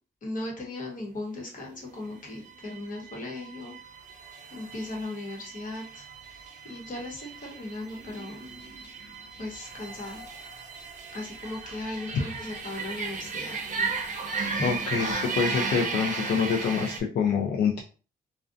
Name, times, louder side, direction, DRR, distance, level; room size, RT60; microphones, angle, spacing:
voice 1, 0.2-3.8 4.5-8.4 9.4-10.3 11.1-13.9, left 2 dB, 55° left, -2 dB, 1.0 m, -38 dB
sound 1, 1.9-17.0, right 4 dB, 50° right, 0.6 m, -35 dB
voice 2, 14.6-17.8, left 6 dB, 80° left, -1 dB, 0.5 m, -26 dB
2.4 x 2.2 x 2.5 m, 0.36 s
wide cardioid pair, 125°, 17 cm